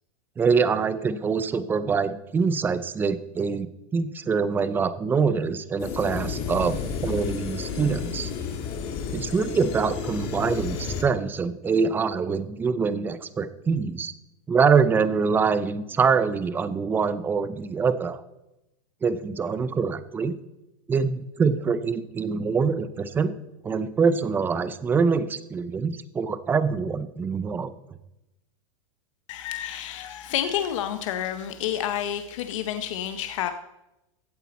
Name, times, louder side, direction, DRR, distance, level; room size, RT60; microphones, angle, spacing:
voice 1, 0.4-8.3 9.1-14.1 14.5-18.2 19.0-20.3 20.9-23.3 23.6-27.7, right 5 dB, 10° right, 13 dB, 0.5 m, -24 dB
sound 1, 5.8-11.0, left 6 dB, 35° left, 1.6 m, -32 dB
voice 2, 29.3-33.5, left 10 dB, 65° left, 8 dB, 0.8 m, -29 dB
15.5 x 8.2 x 4.2 m, 0.92 s
supercardioid pair, 155°, 17 cm